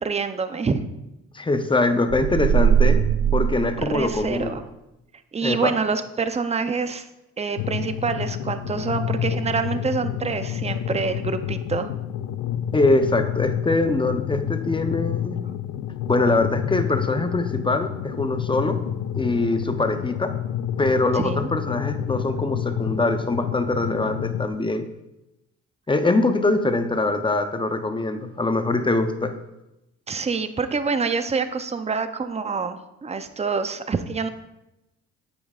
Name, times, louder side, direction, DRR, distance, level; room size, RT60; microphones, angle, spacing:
voice 1, 0.0-0.8 3.8-4.6 5.3-7.1 7.4-11.9 21.1-21.5 30.1-34.3, right 5 dB, 20° right, 10 dB, 0.6 m, -26 dB
voice 2, 1.3-3.0 3.3-4.6 5.4-5.7 12.7-15.4 16.1-18.8 19.1-20.3 20.8-24.8 25.9-29.3, left 2 dB, 15° left, 8 dB, 0.7 m, -23 dB
sound 1, 2.1-4.5, right 8 dB, 65° right, 0.5 m, -21 dB
sound 2, 7.6-24.5, left 10 dB, 90° left, 0.5 m, -29 dB
9.0 x 8.3 x 2.4 m, 0.93 s
cardioid pair, 90°, 30 cm